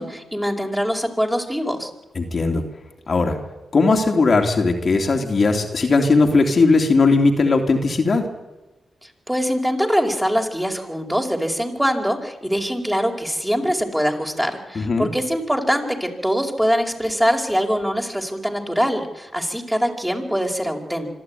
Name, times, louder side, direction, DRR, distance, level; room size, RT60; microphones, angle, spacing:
voice 1, 0.0-1.9 9.3-21.1, equal, 5° right, 3 dB, 4.9 m, -23 dB
voice 2, 2.1-2.6 3.1-3.4 3.7-8.2 14.7-15.1, left 3 dB, 55° left, 2 dB, 3.1 m, -18 dB
25.5 x 12.5 x 9.6 m, 1.1 s
supercardioid pair, 40°, 0 cm